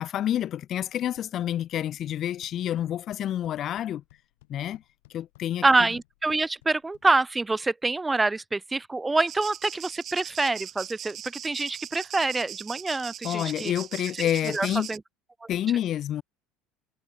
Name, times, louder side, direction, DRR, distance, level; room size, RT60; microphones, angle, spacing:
voice 1, 0.0-4.0 4.5-4.8 5.1-5.9 13.2-14.9 15.5-16.2, left 11 dB, 50° left, 0.5 m, -28 dB
sound 1, 0.6-7.6, left 20 dB, 75° left, 8.0 m, -60 dB
voice 2, 5.6-11.2 11.4-13.7 14.5-15.0, right 3 dB, 15° right, 0.5 m, -26 dB
sound 2, 9.3-15.0, right 10 dB, 45° right, 0.7 m, -40 dB
hypercardioid pair, 70°, 0 cm